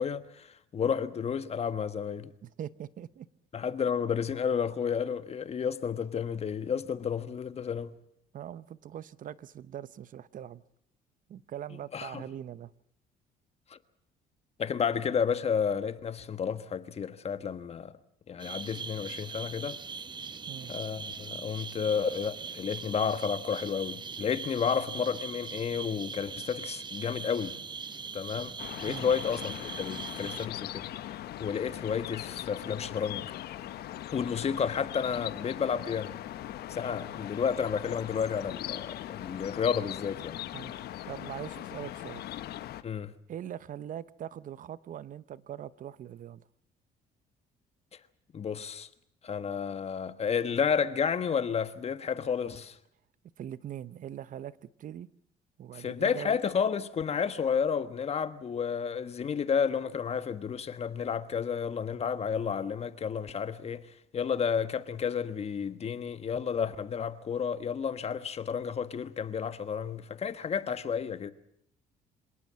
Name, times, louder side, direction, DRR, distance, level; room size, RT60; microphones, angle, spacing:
voice 1, 0.0-2.3 3.5-7.9 11.9-12.2 13.7-13.8 14.6-17.9 18.3-19.8 20.7-27.6 28.1-28.5 28.8-30.9 31.4-33.3 34.1-36.1 36.7-40.4 42.8-43.1 48.3-48.9 49.2-52.8 55.7-63.9 64.1-71.3, left 7 dB, 40° left, 1.4 m, -31 dB
voice 2, 2.4-3.3 8.3-10.6 11.3-12.7 20.5-20.7 28.9-29.1 40.5-40.7 41.1-42.2 43.3-46.5 53.4-55.1 55.6-56.4, right 10 dB, 50° right, 0.9 m, -42 dB
sound 1, 18.4-30.5, right 5 dB, 25° right, 1.1 m, -41 dB
sound 2, 28.6-42.8, left 13 dB, 70° left, 1.2 m, -40 dB
26.5 x 18.5 x 7.5 m
cardioid pair, 110°, 17 cm